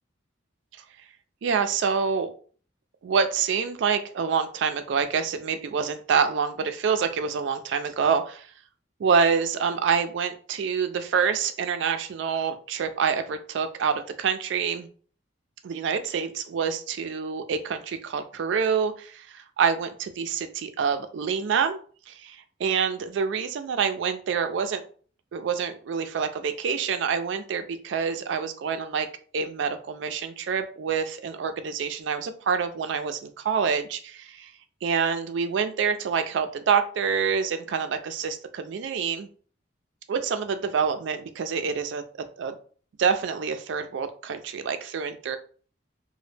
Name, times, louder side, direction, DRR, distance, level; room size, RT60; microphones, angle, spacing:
voice 1, 1.4-2.3 3.0-8.5 9.0-14.9 15.6-21.8 22.1-24.8 25.3-29.1 29.3-34.5 34.8-39.3 40.1-42.1 42.4-42.5 43.0-45.4, right 6 dB, 65° right, 9 dB, 0.3 m, -26 dB
2.1 x 2.0 x 3.2 m, 0.42 s
head